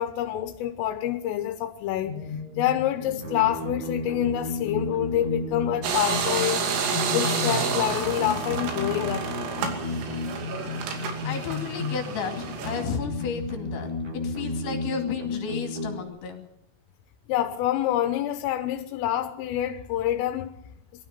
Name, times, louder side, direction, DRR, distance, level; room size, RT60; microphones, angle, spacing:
voice 1, 0.0-2.2 2.6-6.6 7.1-9.3 10.5-10.7 17.3-20.5, left 12 dB, 85° left, 3.7 m, -27 dB
sound 1, 2.0-16.0, left 3 dB, 45° right, 8.1 m, -33 dB
sound 2, 5.8-12.8, right 5 dB, 80° right, 5.2 m, -29 dB
voice 2, 11.2-13.9 14.2-16.5, left 6 dB, 70° left, 4.8 m, -33 dB
22.5 x 13.5 x 9.4 m
omnidirectional pair, 5.7 m